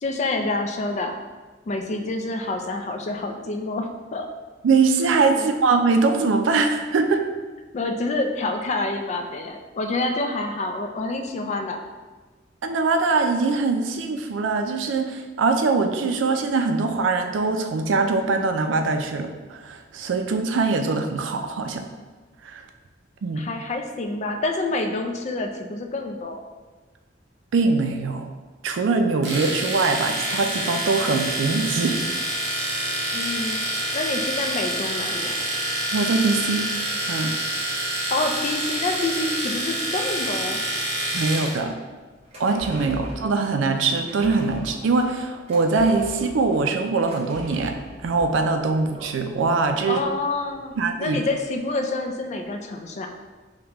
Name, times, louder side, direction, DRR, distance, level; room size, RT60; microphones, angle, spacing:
voice 1, 0.0-1.1 1.7-4.3 5.3-5.5 7.7-11.8 23.4-26.4 33.1-33.6 33.9-35.4 38.1-40.6 49.9-50.7 51.0-53.1, left 2 dB, 40° left, 4 dB, 0.3 m, -27 dB
voice 2, 4.6-7.2 12.6-21.8 22.4-22.6 23.2-23.4 27.5-28.3 28.6-32.0 35.9-36.7 37.1-37.3 41.1-41.8 42.4-47.7 48.0-50.0 50.8-51.2, right 4 dB, 90° right, 5 dB, 0.4 m, -22 dB
Domestic sounds home sounds, 29.2-41.6, right 1 dB, 65° right, 0.9 m, -27 dB
sound 1, 42.1-50.8 51.1-51.2, equal, 35° right, 0.8 m, -41 dB
4.9 x 2.2 x 2.9 m, 1.3 s
head